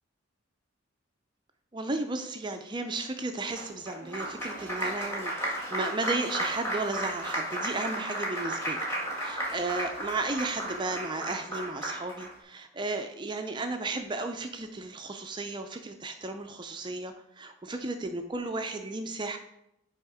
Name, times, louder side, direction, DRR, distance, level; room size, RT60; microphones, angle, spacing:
voice 1, 1.7-8.8 9.2-19.4, right 3 dB, 20° right, 6 dB, 0.4 m, -34 dB
Applause, 3.6-12.3, right 1 dB, 15° left, 1.8 m, -34 dB
10.0 x 3.5 x 4.8 m, 0.82 s
head